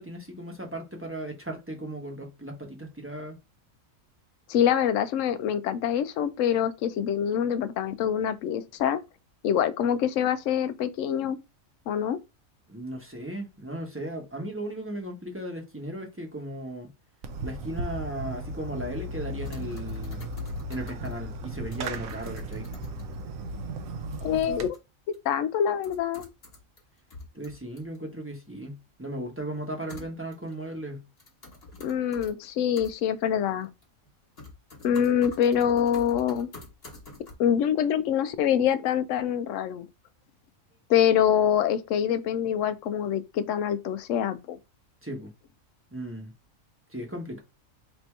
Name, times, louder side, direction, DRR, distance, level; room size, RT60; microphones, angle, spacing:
voice 1, 0.0-3.4 12.7-16.9 17.4-20.3 20.7-22.7 27.3-31.0 45.0-45.3 45.9-46.3 46.9-47.4, right 1 dB, 10° right, 0.9 m, -36 dB
voice 2, 4.5-9.0 9.4-11.4 11.9-12.2 24.2-24.7 25.2-26.3 31.8-33.7 34.8-36.5 37.4-39.9 40.9-44.6, left 9 dB, 70° left, 0.9 m, -25 dB
Fireworks, 17.2-24.7, right 1 dB, 80° right, 1.1 m, -36 dB
sound 1, 19.4-21.3 21.7-23.2 24.7-24.8 25.1-25.2 25.8-26.8 27.1-28.0 29.9-30.5 31.2-32.3 32.8-32.9 33.6-34.1 34.4-37.3, left 2 dB, 45° left, 1.6 m, -45 dB
3.4 x 2.7 x 4.5 m
omnidirectional pair, 1.4 m